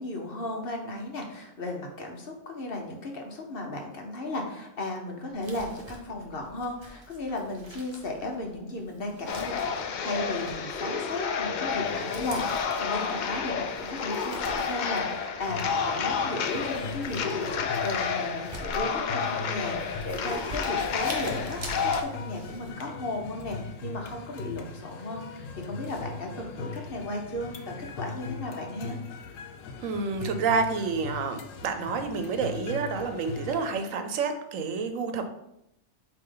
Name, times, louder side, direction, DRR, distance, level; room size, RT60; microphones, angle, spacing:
voice 1, 0.0-29.0, left 2 dB, 50° left, 2 dB, 1.1 m, -35 dB
Crumpling crinkling, 5.3-22.7, right 1 dB, 25° right, 0.8 m, -46 dB
sound 1, 9.3-22.0, left 6 dB, 70° left, 0.4 m, -30 dB
sound 2, 15.5-33.7, left 4 dB, 85° left, 1.0 m, -40 dB
voice 2, 29.8-35.2, right 5 dB, 80° right, 7 dB, 1.1 m, -29 dB
8.5 x 2.9 x 3.8 m, 0.82 s
omnidirectional pair, 1.3 m